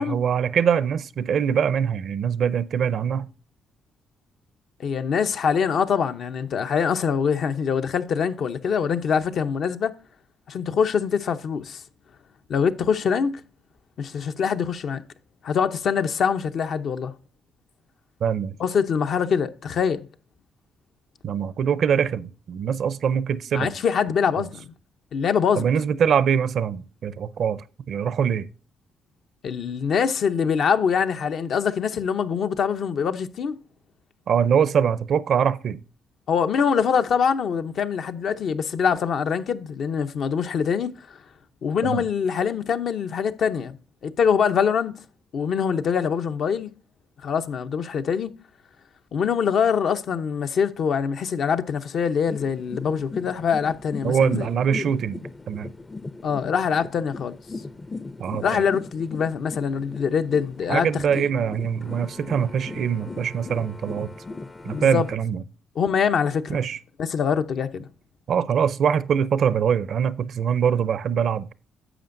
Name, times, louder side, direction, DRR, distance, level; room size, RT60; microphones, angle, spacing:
voice 1, 0.0-3.3 18.2-18.6 21.2-23.7 24.4-24.5 25.6-28.5 34.3-35.8 41.8-42.0 54.0-55.2 55.5-55.7 58.2-58.6 60.7-64.1 64.6-65.4 66.5-66.8 68.3-71.5, right 7 dB, 60° right, 0.5 m, -23 dB
voice 2, 4.8-9.9 10.5-11.8 12.5-13.4 14.0-15.0 15.4-17.1 18.6-20.0 23.5-24.6 25.1-25.7 29.4-33.6 36.3-40.9 41.6-43.8 44.0-44.9 45.3-46.7 47.2-48.3 49.1-54.5 56.2-57.4 58.4-61.3 64.7-65.1 65.8-66.6 67.0-67.9, left 6 dB, 65° left, 0.7 m, -24 dB
sound 1, 52.3-65.2, left 3 dB, 20° left, 0.5 m, -38 dB
11.0 x 6.9 x 2.6 m
cardioid pair, 90°, 0 cm